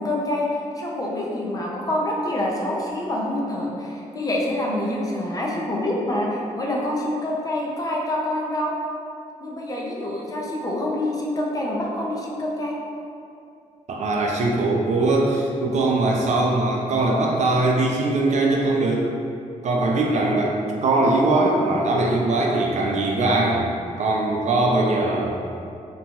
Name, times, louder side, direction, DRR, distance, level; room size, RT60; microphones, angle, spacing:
voice 1, 0.0-8.7 9.4-12.8, left 1 dB, 25° left, -3 dB, 0.5 m, -26 dB
voice 2, 13.9-19.1 19.6-23.7 24.0-25.3, right 2 dB, 60° right, -1 dB, 0.4 m, -21 dB
2.9 x 2.2 x 2.8 m, 2.5 s
cardioid pair, 90°, 14 cm